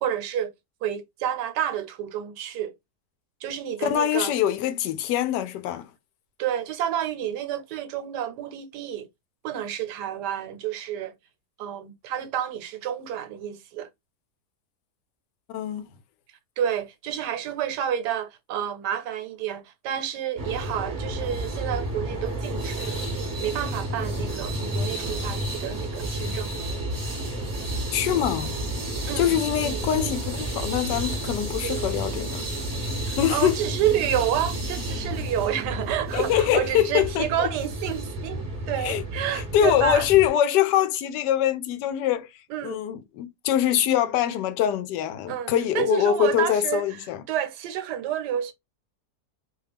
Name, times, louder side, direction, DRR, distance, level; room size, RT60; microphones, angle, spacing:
voice 1, 0.0-0.5 0.8-2.7 3.4-4.3 6.4-9.1 9.4-11.1 11.6-13.9 16.6-26.6 29.1-29.3 29.6-30.2 31.6-31.9 33.0-40.1 42.5-42.8 45.3-48.5, right 10 dB, 80° right, 1.2 m, -29 dB
voice 2, 3.8-5.9 15.5-15.9 27.9-28.6 29.2-32.5 33.2-33.5 36.1-37.5 38.8-39.0 39.3-42.3 42.6-47.2, left 11 dB, 85° left, 1.2 m, -24 dB
sound 1, 20.4-40.3, right 1 dB, 20° right, 0.5 m, -31 dB
2.9 x 2.3 x 3.3 m
omnidirectional pair, 1.8 m